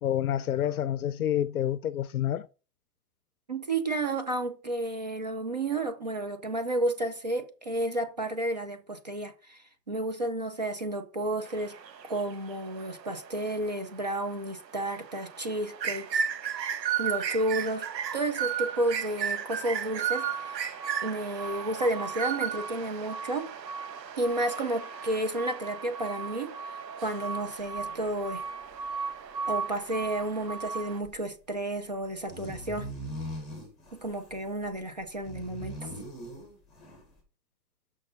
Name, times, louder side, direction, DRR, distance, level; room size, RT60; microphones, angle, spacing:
voice 1, 0.0-2.5, left 10 dB, 60° left, 0.6 m, -28 dB
voice 2, 3.5-11.7 12.1-16.2 16.6-16.7 17.0-17.8 18.1-20.6 21.0-23.5 24.2-26.6 27.0-28.4 29.5-32.9 33.9-35.9, right 1 dB, 25° right, 0.6 m, -31 dB
sound 1, 11.5-31.0, right 7 dB, 80° right, 1.4 m, -35 dB
sound 2, 27.6-27.8 28.1-28.2 28.6-28.7 29.2-29.3 29.7-29.8 30.0-30.3 31.0-31.1 31.6-31.7 32.0-37.2, equal, ahead, 1.2 m, -41 dB
6.5 x 6.2 x 5.8 m
hypercardioid pair, 175°, 50 cm